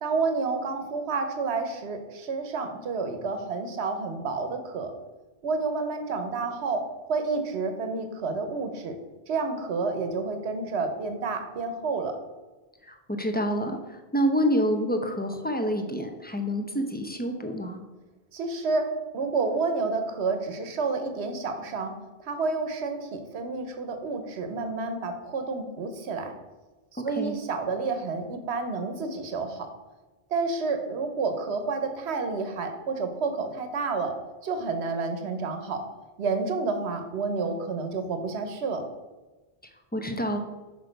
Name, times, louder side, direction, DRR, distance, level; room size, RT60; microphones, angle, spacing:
voice 1, 0.0-4.9 5.4-6.8 7.1-9.0 9.3-12.2 18.3-18.9 19.1-21.9 22.2-26.3 26.9-29.7 30.3-34.1 34.4-35.8 36.2-38.8, right 4 dB, 80° right, 7 dB, 1.1 m, -29 dB
voice 2, 12.9-17.8 27.1-27.3 39.9-40.4, equal, 10° left, 5 dB, 0.5 m, -27 dB
6.2 x 5.0 x 5.1 m, 1.2 s
omnidirectional pair, 1.1 m